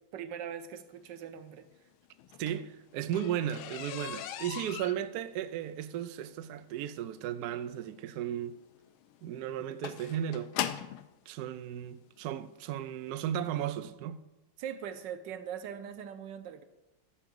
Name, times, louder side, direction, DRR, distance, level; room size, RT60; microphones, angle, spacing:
voice 1, 0.1-1.7 14.6-16.6, right 8 dB, 70° right, 1.3 m, -41 dB
sound 1, 2.2-11.1 12.0-12.1 12.6-12.8 13.1-13.2 13.6-13.7, left 11 dB, 85° left, 1.4 m, -40 dB
voice 2, 2.4-8.6 9.2-10.5 11.3-14.2, right 10 dB, 85° right, 0.8 m, -35 dB
11.5 x 4.8 x 6.9 m
omnidirectional pair, 2.2 m